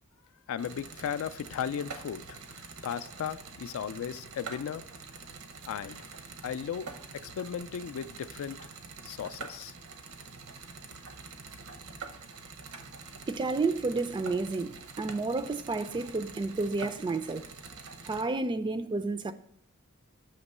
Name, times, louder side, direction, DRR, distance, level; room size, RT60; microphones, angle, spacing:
voice 1, 0.5-4.9 5.7-6.0 6.4-6.9 7.1-8.6 9.0-9.7, left 8 dB, 65° left, 0.3 m, -36 dB
sound 1, 0.6-18.2, right 4 dB, 80° right, 0.7 m, -46 dB
voice 2, 13.3-17.4 18.0-19.3, right 3 dB, 20° right, 0.3 m, -31 dB
7.1 x 2.9 x 5.4 m
head